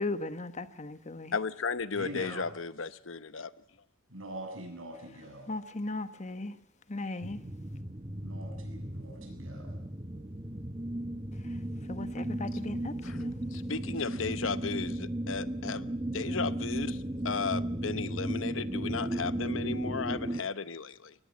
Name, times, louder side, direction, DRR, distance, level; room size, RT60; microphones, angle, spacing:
voice 1, 0.0-1.3 5.5-6.5 6.9-7.4 11.9-13.3, left 2 dB, 35° left, 12 dB, 1.2 m, -37 dB
voice 2, 1.3-3.5 13.0-13.2 13.5-17.0 17.2-21.1, left 5 dB, 75° left, 15 dB, 1.0 m, -35 dB
voice 3, 1.9-2.4 4.1-5.5 8.2-9.8, right 1 dB, 85° right, 4 dB, 7.3 m, -43 dB
sound 1, 7.2-20.4, right 1 dB, 20° right, 1.1 m, -35 dB
22.0 x 19.5 x 7.4 m, 0.75 s
head